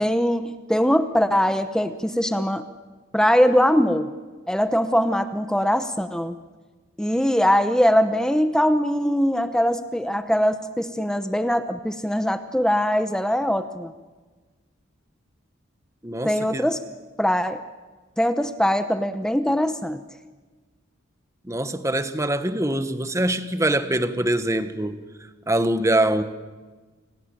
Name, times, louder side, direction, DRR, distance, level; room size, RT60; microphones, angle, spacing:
voice 1, 0.0-2.6 3.1-4.1 4.5-6.3 7.0-13.9 16.2-16.8 17.2-17.6 18.2-20.0, equal, 5° left, 10 dB, 0.9 m, -21 dB
voice 2, 16.0-16.6 21.4-25.0 25.5-26.2, right 1 dB, 15° right, 10 dB, 1.2 m, -23 dB
29.0 x 18.5 x 9.1 m, 1.3 s
head